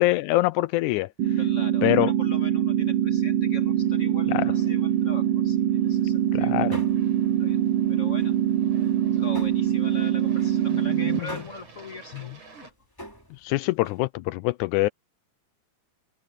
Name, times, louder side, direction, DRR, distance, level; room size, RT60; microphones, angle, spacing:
voice 1, 0.0-1.4 1.8-2.1 4.3-4.5 6.3-6.8 10.9-11.3 13.4-14.9, left 19 dB, 85° left, 2.0 m, -24 dB
sound 1, 1.2-11.2, right 10 dB, 80° right, 1.2 m, -23 dB
voice 2, 1.4-6.9 7.4-7.6 7.9-8.4 9.1-12.7, left 1 dB, 25° left, 2.4 m, -42 dB
Aircraft, 3.5-12.7, right 5 dB, 60° right, 5.7 m, -52 dB
sound 2, 5.9-6.2 6.5-7.4 7.7-9.9 10.2-14.0, equal, 5° left, 3.9 m, -46 dB
omnidirectional pair, 3.4 m